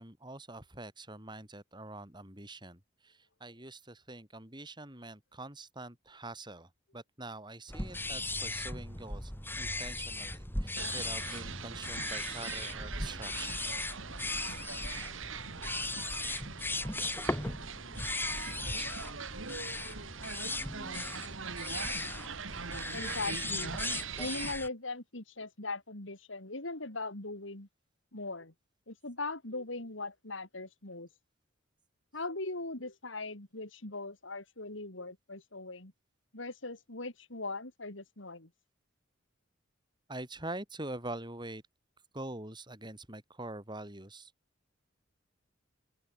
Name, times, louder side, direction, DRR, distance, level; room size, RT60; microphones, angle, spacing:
voice 1, 0.0-9.3 9.6-13.7 40.1-41.6 42.1-44.3, right 2 dB, 25° right, 7.9 m, -45 dB
sound 1, 7.7-24.7, left 2 dB, 10° left, 7.9 m, -38 dB
sound 2, 10.8-24.5, right 5 dB, 80° right, 2.2 m, -42 dB
voice 2, 22.9-23.7 24.2-27.7 28.1-28.5 28.9-31.1 32.1-35.9 36.3-38.5, left 3 dB, 70° left, 3.4 m, -40 dB
open air
head